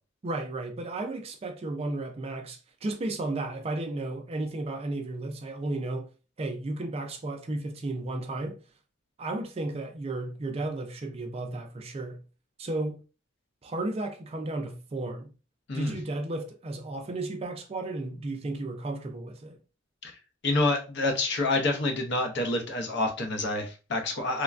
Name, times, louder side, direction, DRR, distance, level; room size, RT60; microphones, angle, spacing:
voice 1, 0.2-6.1 6.4-8.6 9.2-12.2 12.6-13.0 13.6-15.3 15.7-19.6, right 2 dB, 30° right, 0.3 m, -33 dB
voice 2, 20.4-24.4, left 2 dB, 55° left, 0.6 m, -27 dB
3.2 x 2.2 x 2.4 m
head